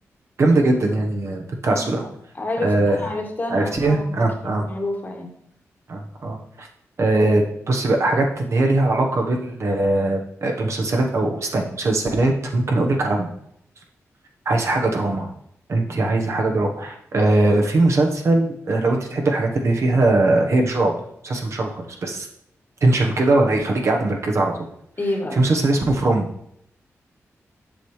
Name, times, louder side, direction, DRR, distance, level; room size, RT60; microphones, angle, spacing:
voice 1, 0.4-2.0 2.6-3.0 3.5-4.7 5.9-6.7 7.0-13.3 14.5-15.3 15.7-21.0 21.2-22.3 22.8-24.5 25.3-26.3, right 2 dB, 60° right, 1 dB, 1.1 m, -20 dB
voice 2, 1.6-2.1 2.3-5.3 25.0-25.5, left 2 dB, 35° left, 2 dB, 1.5 m, -29 dB
7.5 x 5.5 x 3.2 m, 0.73 s
cardioid pair, 75°, 5 cm